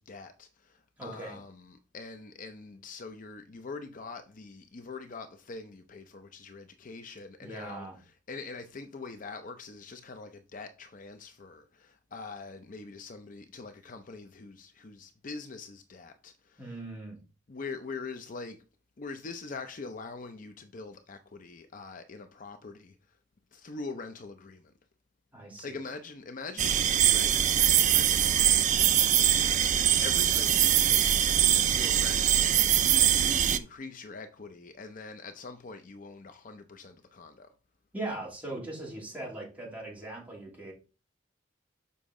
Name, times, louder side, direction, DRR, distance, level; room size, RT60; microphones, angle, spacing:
voice 1, 0.0-16.7 17.5-18.6 19.0-23.0 23.5-24.7 25.6-27.4 27.6-28.9 30.0-32.4 32.8-37.5, left 4 dB, 45° left, 0.6 m, -43 dB
voice 2, 1.0-1.4 7.4-8.0 16.6-17.2 25.3-25.8 37.9-40.7, right 2 dB, 10° right, 2.7 m, -40 dB
sound 1, 26.6-33.6, right 10 dB, 40° right, 0.4 m, -23 dB
6.9 x 5.1 x 3.7 m
head